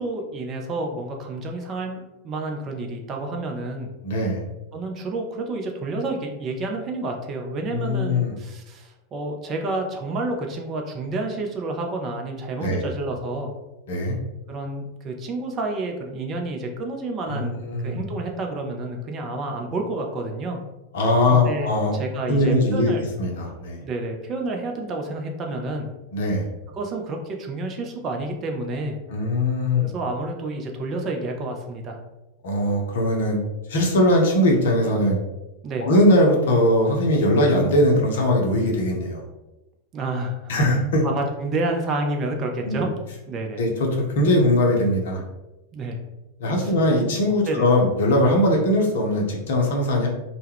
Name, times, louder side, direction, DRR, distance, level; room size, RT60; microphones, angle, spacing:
voice 1, 0.0-3.9 4.7-13.5 14.5-20.6 21.3-23.0 23.8-25.9 26.7-29.0 29.8-32.0 35.6-35.9 39.9-40.5 41.0-42.9 43.3-43.6 45.7-46.0 46.6-46.7 47.5-47.7, right 2 dB, 30° right, 2 dB, 0.4 m, -29 dB
voice 2, 4.0-4.4 7.7-8.3 12.6-12.9 13.9-14.2 17.3-18.0 20.9-22.0 22.3-22.9 23.2-23.8 26.1-26.5 29.1-29.9 32.4-33.4 33.7-35.2 35.8-39.2 40.5-41.0 42.6-42.8 43.6-45.2 46.4-50.1, left 1 dB, 60° left, 0 dB, 0.6 m, -20 dB
2.2 x 2.1 x 3.3 m, 1.0 s
figure-of-eight pair, 90°, 0 cm